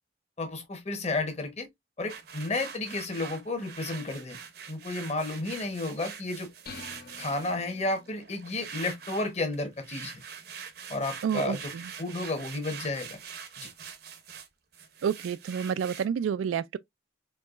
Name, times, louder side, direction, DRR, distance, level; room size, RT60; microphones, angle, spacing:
voice 1, 0.4-1.7 2.0-4.4 4.7-6.5 7.2-10.2 10.9-11.7 12.0-13.2 13.6-13.7, left 2 dB, 35° left, 1.0 m, -32 dB
sound 1, 2.1-7.6 7.9-14.5 14.7-16.0, right 7 dB, 55° right, 0.7 m, -44 dB
sound 2, 6.7-8.3, left 4 dB, 50° left, 0.6 m, -47 dB
voice 2, 11.2-11.9 15.0-16.8, right 7 dB, 90° right, 0.3 m, -29 dB
4.6 x 2.9 x 2.4 m
head